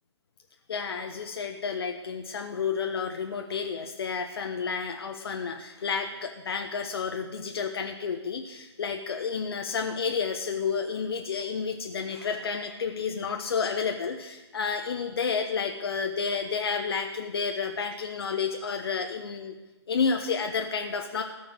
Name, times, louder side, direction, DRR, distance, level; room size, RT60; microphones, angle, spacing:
voice 1, 0.7-19.5 19.9-21.2, left 5 dB, 60° left, 3 dB, 1.3 m, -30 dB
14.5 x 7.2 x 9.6 m, 1.1 s
figure-of-eight pair, 125°, 15 cm